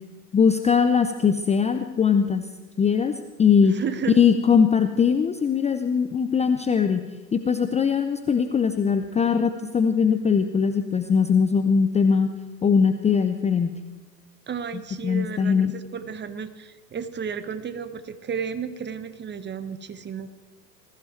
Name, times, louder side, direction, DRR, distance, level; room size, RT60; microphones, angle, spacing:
voice 1, 0.3-2.5 2.8-3.1 3.4-3.8 4.2-7.0 7.3-12.3 12.6-13.7 15.0-15.7, left 6 dB, 15° left, 8 dB, 0.6 m, -21 dB
voice 2, 3.6-4.2 14.5-20.3, right 7 dB, 20° right, 12 dB, 1.2 m, -33 dB
20.5 x 14.5 x 4.6 m, 1.2 s
hypercardioid pair, 95°, 49 cm